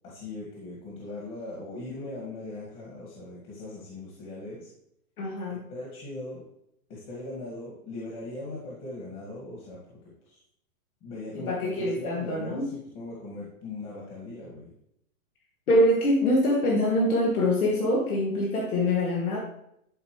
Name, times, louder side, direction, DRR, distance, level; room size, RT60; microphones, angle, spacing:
voice 1, 0.0-4.7 5.5-6.5 6.9-10.0 10.2-10.4 11.0-14.7, left 2 dB, 25° left, -5 dB, 1.9 m, -39 dB
voice 2, 5.2-5.6 11.3-12.7 15.7-19.4, left 1 dB, 90° left, -3 dB, 2.3 m, -24 dB
11.0 x 5.4 x 3.1 m, 0.75 s
hypercardioid pair, 160°, 43 cm